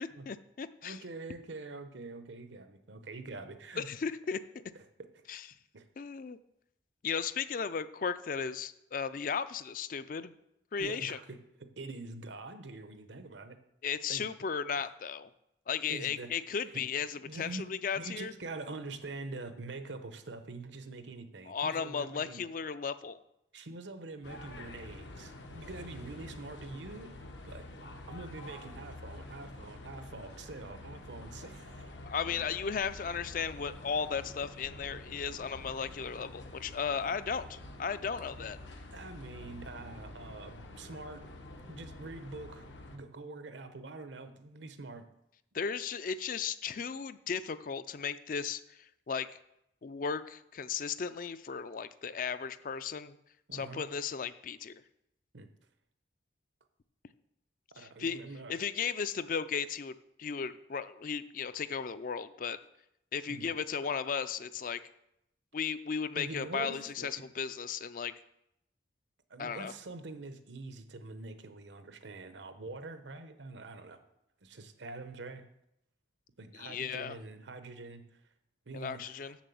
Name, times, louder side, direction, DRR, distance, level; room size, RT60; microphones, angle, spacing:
voice 1, 0.0-1.0 3.8-4.4 5.3-5.4 6.0-6.4 7.0-10.3 10.7-11.2 13.8-15.3 15.7-18.3 21.5-23.2 32.0-38.6 45.5-49.3 49.8-53.2 53.5-54.8 57.8-58.2 58.5-62.6 63.1-64.8 65.5-68.1 69.4-69.7 76.5-77.2 78.7-79.4, left 6 dB, 45° left, 13 dB, 0.4 m, -35 dB
voice 2, 0.8-3.9 4.7-4.8 5.1-5.2 5.7-5.9 10.8-11.4 11.8-13.6 14.1-14.3 14.8-14.9 15.9-16.3 17.2-17.6 17.9-22.4 23.5-27.6 28.1-31.9 36.9-37.1 38.9-41.3 41.7-45.1 53.5-53.9 55.3-55.5 57.8-58.6 63.3-63.5 66.1-67.2 69.3-74.0 74.4-75.4 76.4-78.2 78.7-79.3, right 3 dB, 80° right, 9 dB, 0.9 m, -45 dB
sound 1, 24.2-43.0, left 2 dB, 80° left, 1.0 m, -48 dB
7.3 x 6.7 x 7.0 m, 0.82 s
head